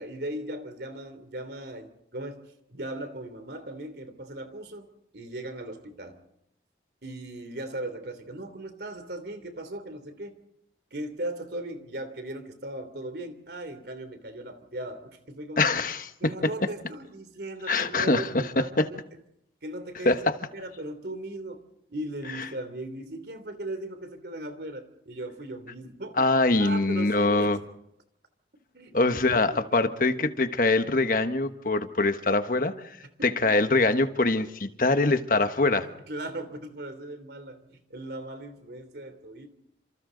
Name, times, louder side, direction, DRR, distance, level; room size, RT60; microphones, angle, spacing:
voice 1, 0.0-2.4 2.7-6.2 7.0-10.4 10.9-15.7 16.2-19.2 19.6-20.2 20.5-26.3 26.6-27.6 28.7-30.1 33.2-33.6 35.8-39.5, right 1 dB, 65° right, 10 dB, 3.2 m, -38 dB
voice 2, 15.6-16.3 17.7-18.9 20.0-20.4 26.2-27.6 28.9-32.7 33.2-35.8, left 2 dB, 50° left, 9 dB, 1.3 m, -23 dB
29.0 x 27.5 x 4.0 m, 0.78 s
head